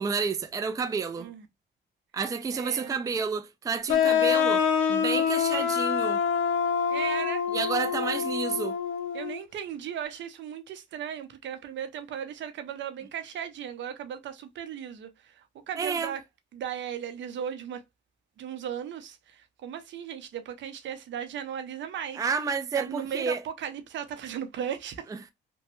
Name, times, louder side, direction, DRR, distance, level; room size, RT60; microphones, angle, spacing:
voice 1, 0.0-1.3 2.1-4.6 4.9-6.2 7.5-8.8 15.8-16.1 22.2-23.4 25.1-25.2, right 5 dB, 15° right, 0.4 m, -30 dB
voice 2, 2.5-3.0 6.9-7.4 9.1-16.2 16.5-17.8 18.4-22.2 22.7-25.1, right 9 dB, 70° right, 0.7 m, -36 dB
sound 1, 3.9-9.4, left 7 dB, 85° left, 0.6 m, -26 dB
3.0 x 2.2 x 3.0 m
cardioid pair, 90°, 20 cm